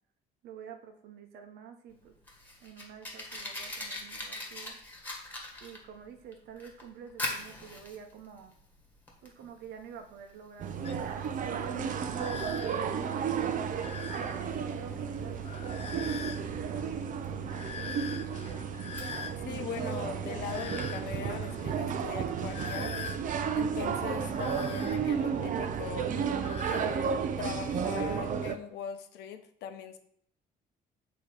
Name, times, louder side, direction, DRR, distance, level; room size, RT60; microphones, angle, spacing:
voice 1, 0.4-2.1 2.6-4.8 5.6-8.6 9.2-12.1 12.9-13.6 14.1-17.1, right 7 dB, 75° right, 6 dB, 1.0 m, -48 dB
Fire, 1.9-19.6, left 2 dB, 10° left, 1.7 m, -44 dB
sound 1, 10.6-28.6, right 7 dB, 50° right, 0.7 m, -33 dB
sound 2, 10.8-26.9, left 7 dB, 35° left, 0.5 m, -45 dB
voice 2, 19.5-23.0 23.5-26.1 26.7-30.0, left 8 dB, 80° left, 8 dB, 0.8 m, -41 dB
8.1 x 3.1 x 4.8 m, 0.65 s
cardioid pair, 110°, 17 cm